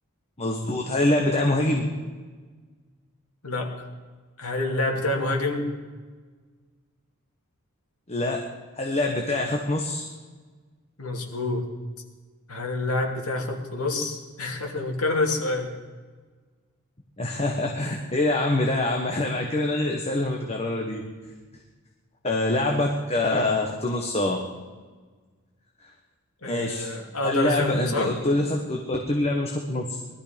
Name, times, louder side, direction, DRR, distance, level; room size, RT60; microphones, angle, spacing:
voice 1, 0.4-1.9 8.1-8.4 8.8-10.0 17.2-21.0 22.2-24.4 26.4-26.9 27.2-29.9, left 2 dB, 30° left, 1 dB, 1.4 m, -25 dB
voice 2, 3.4-3.9 4.4-5.7 11.0-11.7 12.5-15.7 26.4-28.2, left 2 dB, 80° left, 1 dB, 2.7 m, -27 dB
20.0 x 13.0 x 5.3 m, 1.4 s
head